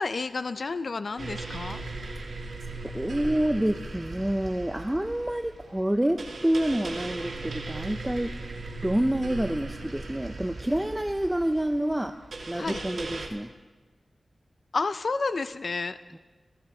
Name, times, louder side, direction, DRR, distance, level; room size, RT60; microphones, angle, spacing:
voice 1, 0.0-1.8 12.6-12.8 14.7-16.0, left 4 dB, 60° left, 12 dB, 0.4 m, -30 dB
sound 1, 1.2-13.3, right 3 dB, 80° right, 1.8 m, -38 dB
voice 2, 2.9-8.3 8.8-12.1 12.5-13.5 16.1-16.2, right 1 dB, 10° right, 7 dB, 0.5 m, -28 dB
18.0 x 14.5 x 3.8 m, 1.3 s
wide cardioid pair, 85°, 0 cm